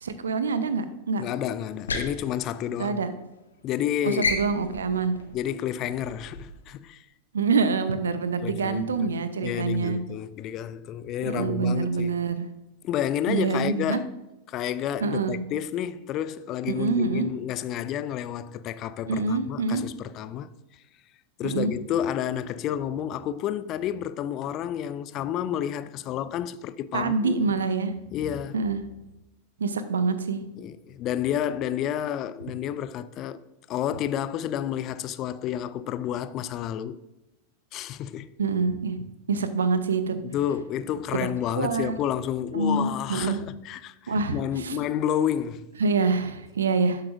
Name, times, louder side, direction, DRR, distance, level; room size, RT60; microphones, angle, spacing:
voice 1, 0.0-1.2 2.8-3.1 4.0-5.2 7.3-10.0 11.2-12.5 13.3-14.0 15.0-15.4 16.7-17.3 19.1-19.9 21.4-21.7 26.9-27.9 28.5-28.8 29.6-30.4 38.4-39.0 39.3-40.2 41.5-42.0 42.5-43.4 44.1-44.8 45.8-47.0, right 4 dB, 70° right, 0.7 m, -26 dB
voice 2, 1.2-3.0 3.6-4.2 5.3-7.1 8.4-9.1 9.4-12.1 12.8-14.1 14.5-20.5 21.4-27.4 28.1-28.6 30.6-33.4 33.7-37.0 37.7-38.3 40.2-45.7, left 10 dB, 35° left, 0.4 m, -30 dB
sound 1, 1.7-3.3 3.6-3.9 4.2-6.7, left 4 dB, 70° left, 1.0 m, -33 dB
12.5 x 7.3 x 2.6 m
figure-of-eight pair, 90°, 0 cm